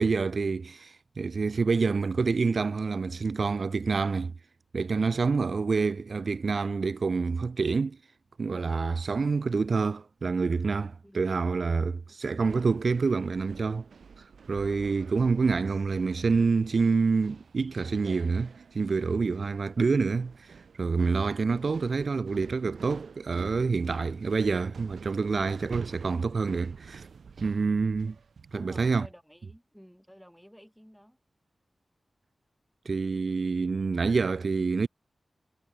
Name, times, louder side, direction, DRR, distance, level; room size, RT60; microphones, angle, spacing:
voice 1, 0.0-4.3 4.7-8.0 8.4-13.9 14.2-27.1 27.4-28.2 28.5-29.1 32.8-34.9, right 4 dB, 65° right, 0.7 m, -27 dB
sound 1, 12.4-28.9, right 6 dB, 85° right, 3.9 m, -48 dB
voice 2, 28.5-31.2, equal, ahead, 4.6 m, -52 dB
cardioid pair, 60°, 0 cm